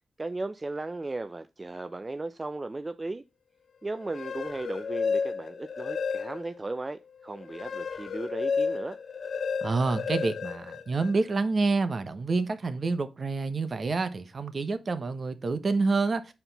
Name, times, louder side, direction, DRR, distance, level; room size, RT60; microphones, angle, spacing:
voice 1, 0.2-3.2 3.8-9.0, right 2 dB, 30° right, 0.4 m, -36 dB
sound 1, 4.0-6.6 7.1-11.4, left 5 dB, 70° left, 0.7 m, -32 dB
voice 2, 9.6-16.3, right 3 dB, 50° right, 0.8 m, -28 dB
5.8 x 4.4 x 3.9 m
cardioid pair, 60°, 0 cm